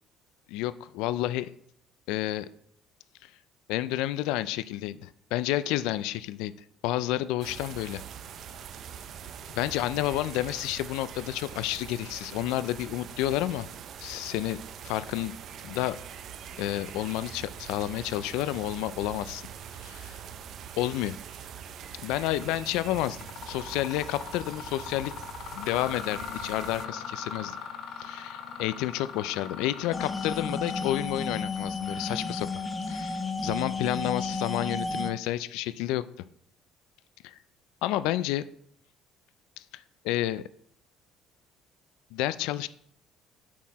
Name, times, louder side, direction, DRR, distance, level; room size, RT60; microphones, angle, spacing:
voice 1, 0.5-1.5 2.1-2.5 3.7-6.5 6.8-8.0 9.5-13.7 14.0-14.6 14.8-15.3 15.6-16.0 16.6-19.4 19.8-20.2 20.8-21.2 22.0-23.2 23.5-25.1 25.5-27.6 28.0-32.5 32.9-36.1 37.2-37.4 37.8-38.4 39.6-40.4 42.1-42.7, left 14 dB, 85° left, 15 dB, 0.3 m, -30 dB
sound 1, 7.4-26.9, right 8 dB, 50° right, 0.5 m, -43 dB
Mechanisms, 22.3-22.6 23.0-33.5, left 6 dB, 55° left, 0.8 m, -41 dB
sound 2, 29.9-35.1, left 3 dB, 20° left, 0.5 m, -32 dB
7.3 x 4.7 x 4.1 m, 0.66 s
cardioid pair, 140°, 0 cm